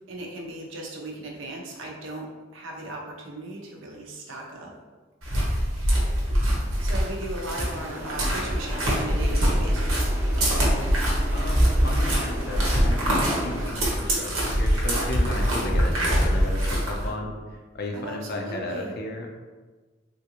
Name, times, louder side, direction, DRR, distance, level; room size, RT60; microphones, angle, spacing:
voice 1, 0.1-4.8 6.4-10.1 17.0-17.1 17.9-19.0, right 1 dB, 65° right, -1 dB, 0.6 m, -37 dB
sound 1, 5.2-17.1, equal, 85° right, 1.0 m, -24 dB
sound 2, 7.6-14.3, equal, 10° right, 0.4 m, -38 dB
voice 2, 11.3-17.3 17.7-19.3, left 2 dB, 50° left, 1 dB, 0.5 m, -34 dB
3.6 x 2.5 x 2.9 m, 1.3 s
head